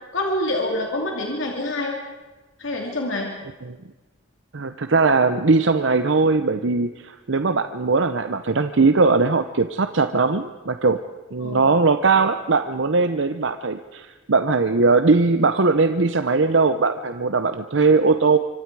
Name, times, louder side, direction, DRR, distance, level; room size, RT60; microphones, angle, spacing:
voice 1, 0.1-2.0 2.6-3.3 11.4-11.7, left 1 dB, 80° left, 0 dB, 2.8 m, -26 dB
voice 2, 4.5-11.0 11.3-18.4, right 4 dB, 70° right, 9 dB, 0.8 m, -20 dB
25.0 x 24.5 x 4.8 m, 1.2 s
head